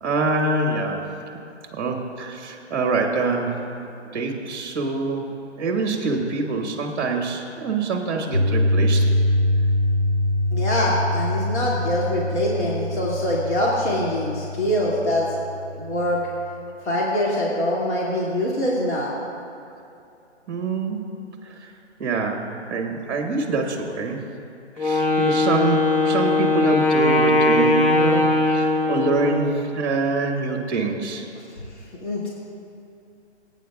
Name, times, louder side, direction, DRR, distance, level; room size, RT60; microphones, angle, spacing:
voice 1, 0.0-1.1 1.7-5.3 5.6-9.1 20.5-21.0 21.4-21.7 22.0-24.2 24.8-31.2, right 3 dB, 20° right, 2 dB, 1.2 m, -25 dB
Piano, 8.3-16.4, left 1 dB, 30° left, 0.6 m, -24 dB
voice 2, 10.5-15.3 15.8-16.2 16.8-19.1 31.4-31.5 32.0-32.3, left 1 dB, 75° left, -5 dB, 2.4 m, -24 dB
Wind instrument woodwind instrument, 24.8-29.6, left 2 dB, 50° left, 1.3 m, -20 dB
24.5 x 9.0 x 2.3 m, 2.7 s
hypercardioid pair, 170°, 35 cm